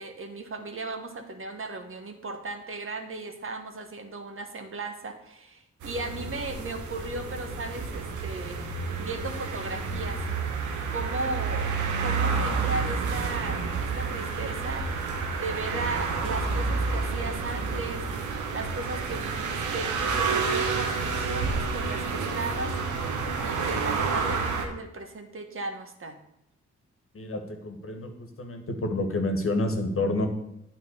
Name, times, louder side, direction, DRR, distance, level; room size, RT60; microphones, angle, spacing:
voice 1, 0.0-8.6 9.0-10.2 10.9-11.7 12.0-14.9 15.4-18.0 18.5-22.7 23.4-26.2, right 2 dB, 45° right, 5 dB, 1.3 m, -36 dB
sound 1, 5.8-24.7, right 4 dB, 85° right, 1.0 m, -29 dB
voice 2, 27.1-28.1 28.4-30.3, left 2 dB, 50° left, 5 dB, 1.5 m, -28 dB
9.2 x 3.8 x 6.6 m, 0.81 s
supercardioid pair, 55°, 29 cm